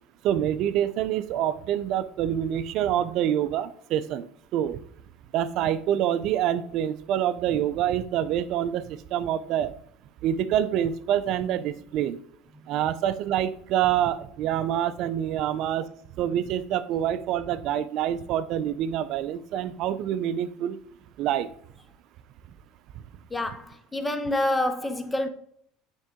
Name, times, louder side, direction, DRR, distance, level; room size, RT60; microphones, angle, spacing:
voice 1, 0.2-4.3 4.5-4.8 5.3-9.7 10.2-12.2 12.7-15.9 16.2-20.8 21.2-21.5, right 10 dB, 55° right, 0.5 m, -26 dB
voice 2, 23.3-25.3, left 1 dB, 10° left, 0.7 m, -27 dB
9.0 x 3.8 x 3.6 m
supercardioid pair, 120°, 0 cm